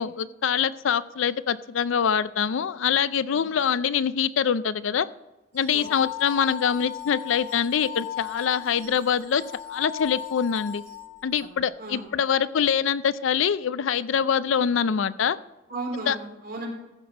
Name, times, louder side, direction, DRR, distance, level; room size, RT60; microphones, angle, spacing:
voice 1, 0.0-5.1 5.5-9.4 9.7-10.8 11.2-15.4 16.1-16.2, left 7 dB, 75° left, 16 dB, 0.4 m, -24 dB
sound 1, 5.6-11.4, left 11 dB, 80° right, 1.5 m, -37 dB
voice 2, 11.4-12.0 15.7-16.7, right 2 dB, 50° right, -1 dB, 3.6 m, -35 dB
14.5 x 6.0 x 5.9 m, 1.0 s
head